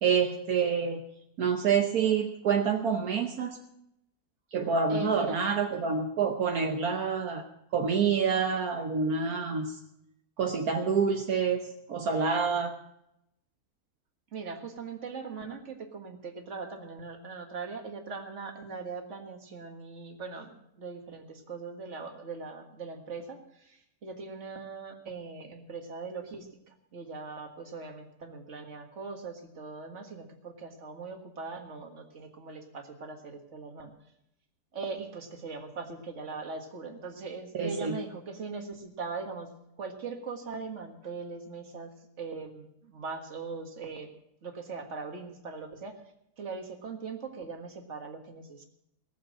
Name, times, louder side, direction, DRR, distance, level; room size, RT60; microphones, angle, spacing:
voice 1, 0.0-1.0 1.4-3.6 4.5-7.4 7.7-9.8 10.4-11.6 11.9-12.7 37.5-38.0, right 6 dB, 70° right, 4 dB, 1.5 m, -27 dB
voice 2, 4.9-5.4 14.3-33.9 34.7-39.5 39.8-44.1 44.4-45.9 46.4-48.6, right 4 dB, 50° right, 5 dB, 1.9 m, -40 dB
18.5 x 7.3 x 7.5 m, 0.81 s
omnidirectional pair, 1.6 m